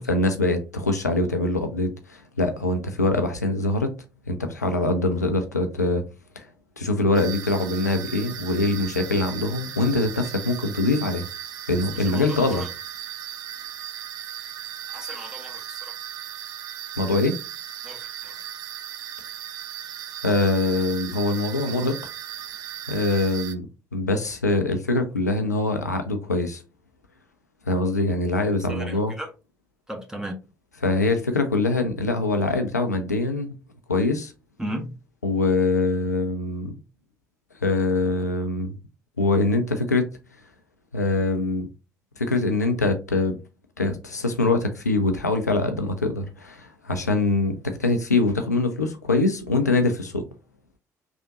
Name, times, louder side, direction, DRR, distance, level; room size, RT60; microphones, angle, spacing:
voice 1, 0.0-3.9 4.3-6.0 6.4-6.5 6.8-11.3 11.7-12.7 17.0-17.4 20.2-22.0 22.9-23.6 23.9-26.6 27.7-29.2 30.8-33.5 33.9-34.3 35.2-36.7 37.6-38.7 39.2-40.1 40.9-41.7 42.2-43.4 43.8-50.3, left 2 dB, 85° left, 0.5 m, -23 dB
sound 1, 7.1-23.5, right 11 dB, 50° right, 0.6 m, -37 dB
voice 2, 12.1-12.7 14.9-15.9 17.8-18.3 28.7-29.3 29.9-30.3 34.6-34.9, right 1 dB, 5° right, 1.3 m, -35 dB
5.0 x 3.6 x 2.5 m
figure-of-eight pair, 50°, 9 cm